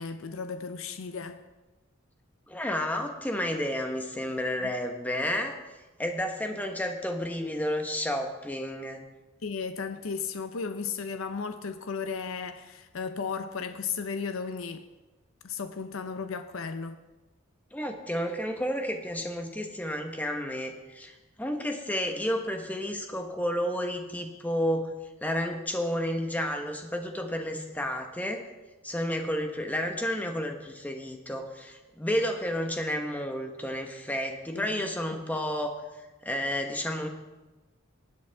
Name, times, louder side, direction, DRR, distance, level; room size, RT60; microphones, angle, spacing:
voice 1, 0.0-1.4 4.6-4.7 9.4-14.9 15.4-17.0 34.5-34.9, left 5 dB, 70° left, 9 dB, 0.6 m, -35 dB
voice 2, 2.5-5.6 6.0-9.0 17.7-24.9 25.2-28.5 28.8-35.8 36.2-37.1, equal, 10° left, 4 dB, 1.0 m, -31 dB
19.5 x 8.2 x 3.5 m, 1.1 s
head